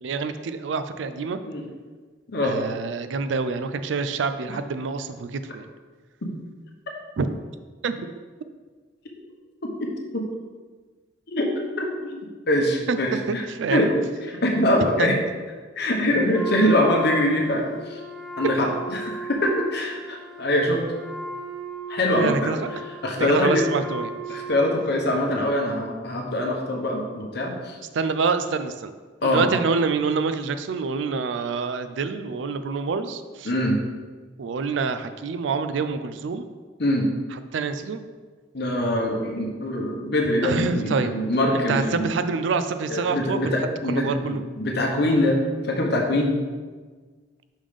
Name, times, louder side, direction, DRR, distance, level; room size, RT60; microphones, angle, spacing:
voice 1, 0.0-1.4 2.4-5.7 7.2-7.3 7.8-8.1 12.9-13.0 13.3-13.9 15.0-15.2 22.2-22.6 23.2-24.4 27.9-28.9 29.2-33.5 34.4-36.5 37.5-38.0 40.4-41.1 41.5-43.4 43.9-44.4, right 4 dB, 70° right, 10 dB, 0.4 m, -26 dB
voice 2, 2.3-2.6 4.5-4.6 6.2-6.3 10.1-10.2 11.3-11.5 11.8-12.2 12.5-13.4 13.7-13.9 14.3-15.2 15.8-18.0 18.4-20.8 21.9-22.5 23.0-23.7 24.3-27.8 29.2-29.5 33.4-33.8 36.8-37.1 38.5-42.1 42.9-46.4, left 1 dB, 60° left, 1 dB, 0.9 m, -23 dB
Wind instrument woodwind instrument, 16.3-25.1, right 1 dB, ahead, 0.4 m, -36 dB
5.3 x 3.6 x 5.0 m, 1.4 s
head